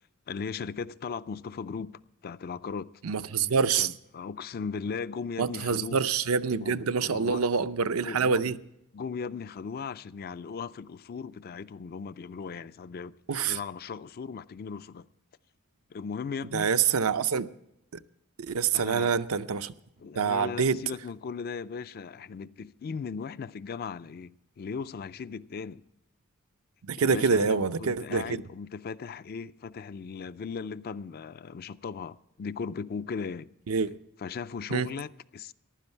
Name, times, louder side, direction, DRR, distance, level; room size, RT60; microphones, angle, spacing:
voice 1, 0.3-2.9 3.7-6.0 6.6-7.4 8.0-8.6 8.9-15.1 15.9-16.7 18.7-19.1 20.0-25.8 27.0-33.5 34.2-35.5, left 5 dB, 45° left, 0.4 m, -37 dB
voice 2, 3.0-3.9 5.4-8.6 13.3-13.6 16.5-17.5 18.4-19.7 20.2-20.8 26.9-28.4 33.7-34.0 34.7-34.9, right 5 dB, 75° right, 0.6 m, -26 dB
15.0 x 11.5 x 4.4 m
head